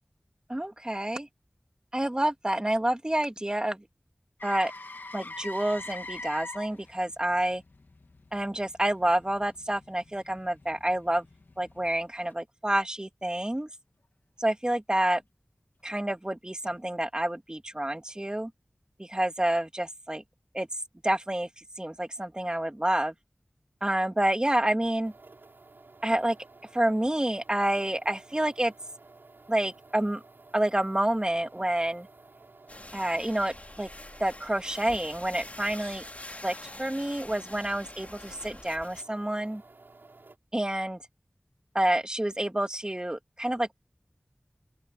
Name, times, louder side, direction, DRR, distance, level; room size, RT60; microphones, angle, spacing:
voice 1, 0.5-1.3 1.9-3.8 4.4-4.7 5.1-7.6 8.3-11.2 11.6-13.7 14.4-15.2 15.8-18.5 19.0-20.2 20.5-20.7 21.0-23.1 23.8-25.1 26.0-26.4 26.7-28.7 29.5-30.2 30.5-32.1 32.9-33.9 34.2-36.0 36.4-39.6 40.5-41.0 41.7-43.7, right 1 dB, 25° right, 2.5 m, -28 dB
Motor vehicle (road), 4.4-12.3 16.6-16.8, left 2 dB, 75° left, 1.9 m, -45 dB
sound 1, 25.0-40.4, right 3 dB, 90° right, 7.0 m, -54 dB
sound 2, 32.7-39.0, left 2 dB, 45° left, 3.8 m, -45 dB
open air
wide cardioid pair, 45°, 3 cm